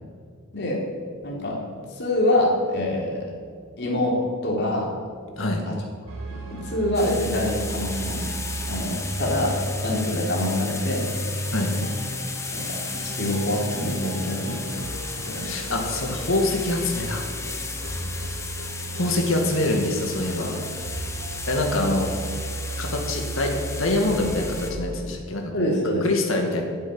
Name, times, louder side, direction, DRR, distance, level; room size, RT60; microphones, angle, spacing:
voice 1, 1.2-1.7 2.0-3.3 3.8-4.2 4.4-4.9 5.7-5.8 6.3-8.3 8.7-9.6 9.8-11.0 11.7-11.9 12.5-15.6 17.9-18.0 21.8-21.9 25.5-26.1, left 1 dB, 55° left, -2 dB, 3.5 m, -26 dB
sound 1, 6.1-24.8, right 1 dB, 70° right, 2.2 m, -34 dB
sound 2, 6.9-24.7, left 4 dB, 15° left, 1.2 m, -35 dB
voice 2, 15.4-17.3 18.9-20.5 21.5-22.1 22.8-23.5 23.8-25.7 26.0-26.6, left 2 dB, 70° left, 2 dB, 2.2 m, -25 dB
11.0 x 9.0 x 9.1 m, 2.1 s
head